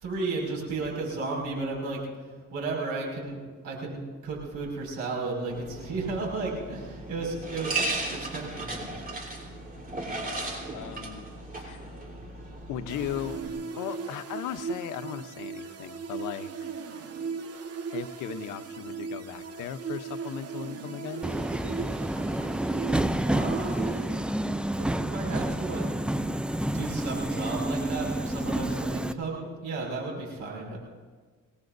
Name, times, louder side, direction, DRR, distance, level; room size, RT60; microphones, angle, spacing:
voice 1, 0.0-2.0 2.5-3.4 3.6-9.1 23.3-23.9 24.8-25.9 26.7-30.8, right 3 dB, 85° right, -2 dB, 5.7 m, -34 dB
sound 1, 5.5-13.5, right 2 dB, 30° right, 3.8 m, -36 dB
voice 2, 9.8-11.3 11.6-11.9 12.7-13.4 13.8-16.5 17.9-21.3, left 10 dB, 90° left, 10 dB, 0.9 m, -37 dB
sound 2, 12.9-24.8, right 5 dB, 50° right, 1.4 m, -38 dB
Subway metro underground, 21.2-29.1, right 1 dB, 5° right, 0.4 m, -29 dB
27.0 x 19.0 x 2.6 m, 1.5 s
cardioid pair, 90°, 30 cm